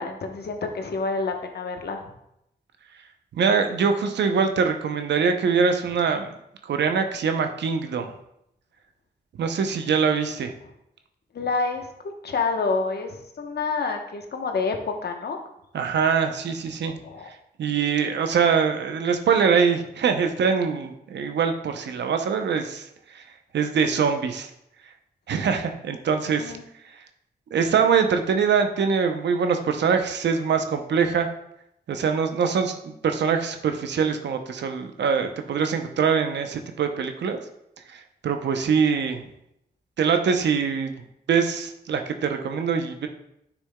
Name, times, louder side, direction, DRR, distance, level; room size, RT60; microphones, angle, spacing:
voice 1, 0.0-2.0 11.3-11.9 12.2-14.8 15.0-15.4 17.0-17.3 26.4-26.6, left 4 dB, 65° left, 4 dB, 1.0 m, -28 dB
voice 2, 3.3-6.3 6.7-8.1 9.4-10.5 15.7-16.9 17.6-22.8 23.1-23.2 23.5-24.5 25.3-26.5 27.5-31.3 31.9-37.4 37.9-39.2 40.0-40.9 41.3-43.1, right 6 dB, 85° right, 6 dB, 0.7 m, -23 dB
10.0 x 6.0 x 2.2 m, 0.80 s
cardioid pair, 60°, 18 cm